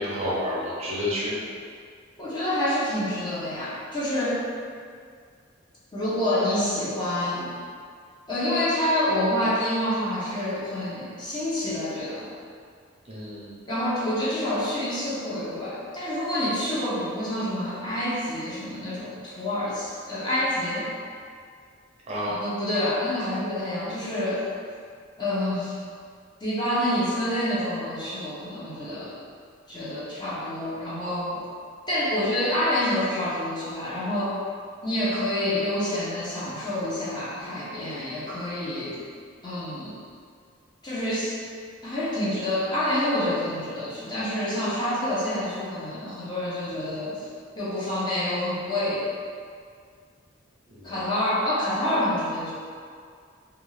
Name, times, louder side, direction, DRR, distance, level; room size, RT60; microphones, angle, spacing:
voice 1, 0.0-1.4 13.1-13.5 22.1-22.4 50.7-51.0, left 1 dB, 30° right, -8 dB, 0.6 m, -30 dB
voice 2, 2.2-4.4 5.9-7.5 8.3-12.3 13.7-20.9 22.4-24.5 25.2-25.8 26.4-29.2 29.7-31.4 31.9-34.4 34.8-39.0 39.4-39.9 40.8-41.4 41.8-47.3 47.6-49.1 50.8-52.5, left 1 dB, 25° left, -9 dB, 0.7 m, -27 dB
2.5 x 2.3 x 3.1 m, 2.2 s
head